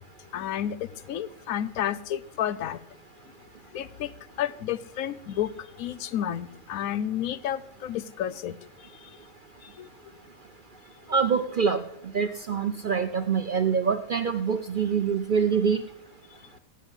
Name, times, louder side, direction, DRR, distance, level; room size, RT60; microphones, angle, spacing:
voice 1, 0.3-2.8 3.7-4.1 4.4-8.6 9.8-9.9, left 10 dB, 75° left, 17 dB, 1.1 m, -31 dB
voice 2, 11.1-11.8 12.1-15.8, right 6 dB, 55° right, 10 dB, 0.6 m, -25 dB
16.0 x 5.7 x 9.8 m, 0.85 s
omnidirectional pair, 1.5 m